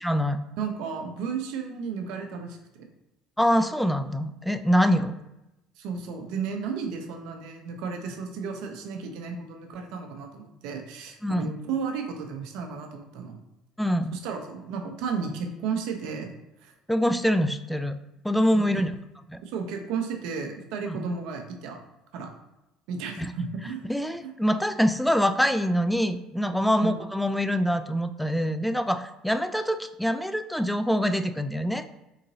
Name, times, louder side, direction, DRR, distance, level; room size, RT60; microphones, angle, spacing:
voice 1, 0.0-0.4 3.4-5.1 11.2-11.5 13.8-14.2 16.9-18.0 18.2-18.9 19.3-19.4 20.9-21.0 23.2-23.3 23.9-31.9, equal, ahead, 10 dB, 0.4 m, -25 dB
voice 2, 0.6-2.9 4.8-5.1 5.8-13.4 14.1-16.3 16.6-16.7 18.5-18.8 19.4-21.8 22.1-22.3 22.9-23.9 26.6-27.0, right 5 dB, 60° right, 4 dB, 0.7 m, -33 dB
3.9 x 3.7 x 2.7 m, 0.93 s
figure-of-eight pair, 60°, 0 cm